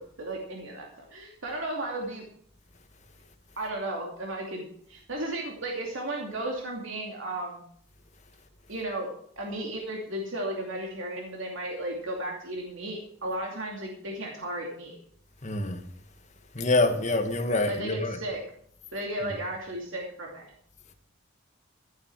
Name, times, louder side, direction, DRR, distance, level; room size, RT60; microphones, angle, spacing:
voice 1, 0.2-2.2 3.6-7.6 8.7-15.0 17.7-18.4 18.9-20.5, right 1 dB, 70° right, 2.7 m, -34 dB
voice 2, 15.4-15.8 16.5-18.2 19.2-19.3, left 2 dB, 35° left, 1.7 m, -26 dB
15.5 x 9.4 x 4.8 m
head